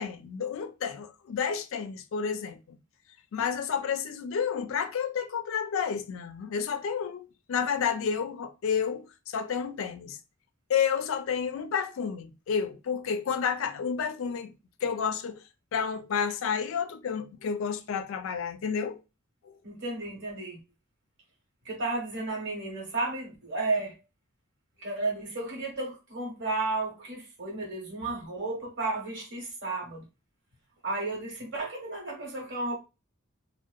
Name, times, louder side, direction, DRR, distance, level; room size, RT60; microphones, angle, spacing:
voice 1, 0.0-2.8 3.3-10.2 10.7-14.5 14.8-15.4 15.7-19.0, left 7 dB, 65° left, 0.3 m, -30 dB
voice 2, 19.6-20.6 21.6-23.9 24.8-30.0 30.8-32.7, right 2 dB, 60° right, 1.2 m, -33 dB
2.7 x 2.1 x 2.3 m
head